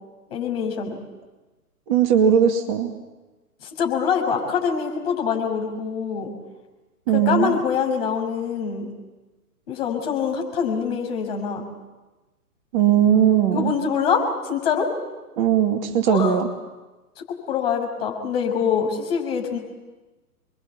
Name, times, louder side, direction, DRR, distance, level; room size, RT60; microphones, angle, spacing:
voice 1, 0.3-1.0 3.6-6.3 7.1-8.9 9.7-11.6 13.5-14.9 16.0-16.4 17.3-19.6, left 6 dB, 40° left, 1 dB, 6.3 m, -24 dB
voice 2, 1.9-2.9 7.1-7.5 12.7-13.7 15.4-16.5, right 8 dB, 30° right, 4 dB, 2.2 m, -19 dB
28.0 x 22.5 x 8.5 m, 1.2 s
figure-of-eight pair, 120°, 45 cm